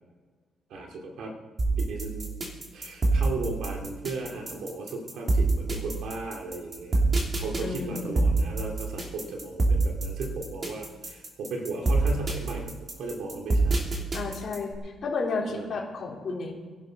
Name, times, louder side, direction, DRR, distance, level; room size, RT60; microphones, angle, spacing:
voice 1, 0.7-1.3 1.9-2.4 2.7-7.0 7.3-13.8 15.5-15.7, right 3 dB, 80° right, 2 dB, 2.5 m, -36 dB
sound 1, 1.6-14.7, right 2 dB, 35° right, 3.1 m, -26 dB
voice 2, 7.6-8.3 14.1-16.5, left 4 dB, 50° left, -2 dB, 3.6 m, -32 dB
20.5 x 11.5 x 4.6 m, 1.4 s
cardioid pair, 120°, 0 cm